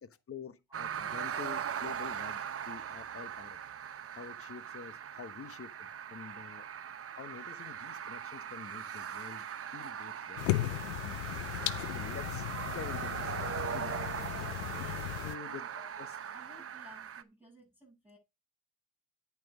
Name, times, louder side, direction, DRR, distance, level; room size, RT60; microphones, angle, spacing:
voice 1, 0.0-2.4 2.7-3.6 4.1-6.7 7.1-11.5 11.9-14.0 14.8-14.9 15.2-15.6 16.0-16.1, left 6 dB, 30° left, 1.2 m, -48 dB
sound 1, 0.7-17.2, right 8 dB, 30° right, 0.8 m, -40 dB
sound 2, 10.4-15.4, left 18 dB, 85° left, 0.6 m, -36 dB
voice 2, 14.6-15.0 15.4-15.9 16.3-18.2, left 1 dB, 5° right, 7.9 m, -57 dB
10.5 x 5.9 x 4.9 m
supercardioid pair, 85°, 46 cm